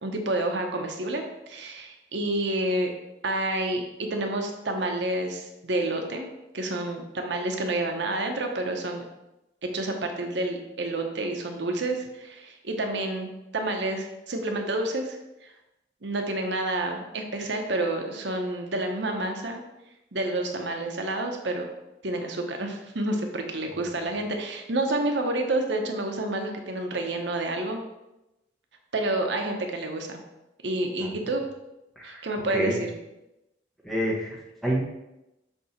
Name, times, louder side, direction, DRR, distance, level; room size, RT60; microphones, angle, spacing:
voice 1, 0.0-2.9 3.2-6.3 6.5-9.0 9.6-15.2 15.4-15.5 16.0-19.6 20.1-21.7 22.0-27.8 28.9-30.2 30.6-31.4 32.0-32.9, right 2 dB, 80° right, 3 dB, 0.9 m, -29 dB
voice 2, 32.0-32.8 33.8-34.8, equal, ahead, -3 dB, 1.0 m, -29 dB
7.0 x 2.8 x 5.7 m, 0.94 s
head